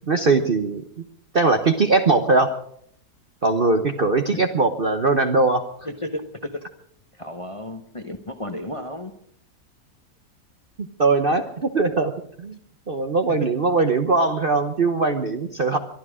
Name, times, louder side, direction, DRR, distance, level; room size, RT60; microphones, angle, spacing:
voice 1, 0.1-0.8 1.3-2.5 3.4-5.6 10.8-12.1 12.4-12.6 12.9-15.8, right 3 dB, 40° right, 7 dB, 0.9 m, -20 dB
voice 2, 5.8-6.5 7.1-9.1, left 1 dB, 25° left, 6 dB, 0.9 m, -33 dB
23.0 x 12.5 x 4.9 m, 0.67 s
omnidirectional pair, 1.8 m